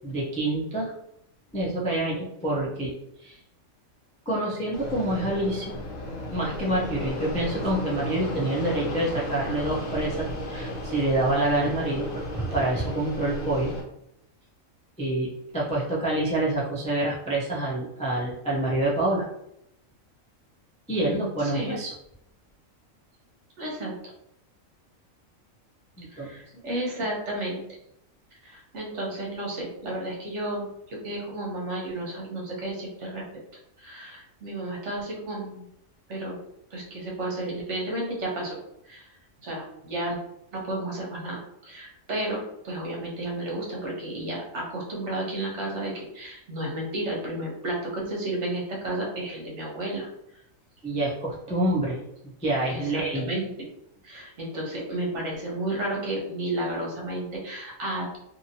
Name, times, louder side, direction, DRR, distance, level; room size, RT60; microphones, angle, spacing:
voice 1, 0.0-0.9 1.5-3.4 4.3-5.8 6.3-13.7 15.0-19.3 20.9-21.9 26.0-26.3 50.8-52.0 52.4-53.3, right 1 dB, 10° left, -6 dB, 0.3 m, -27 dB
Fixed-wing aircraft airplane, 4.7-13.8, left 1 dB, 75° left, 1.1 m, -34 dB
voice 2, 20.9-21.8 23.6-23.9 26.1-27.6 28.4-30.7 31.0-33.2 33.8-35.6 36.1-36.4 36.7-38.6 38.8-39.1 39.4-40.2 40.5-50.1 52.7-53.5 54.0-58.2, right 1 dB, 65° right, -2 dB, 1.2 m, -32 dB
2.8 x 2.6 x 2.7 m, 0.79 s
omnidirectional pair, 1.4 m